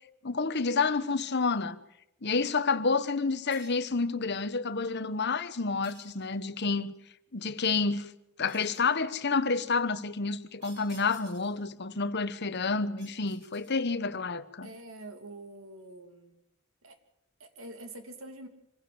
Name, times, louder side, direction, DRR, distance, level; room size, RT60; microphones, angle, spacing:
voice 1, 0.2-1.8 2.2-6.9 7.3-8.1 8.4-14.7, left 4 dB, 55° left, 1.2 m, -29 dB
sound 1, 3.5-4.0 5.8-6.6 8.5-9.0 10.6-11.7 13.0-14.0, right 3 dB, 60° right, 7.0 m, -55 dB
voice 2, 14.6-16.4 16.8-17.0 17.4-18.5, right 1 dB, 85° right, 2.8 m, -46 dB
26.0 x 16.0 x 7.8 m
head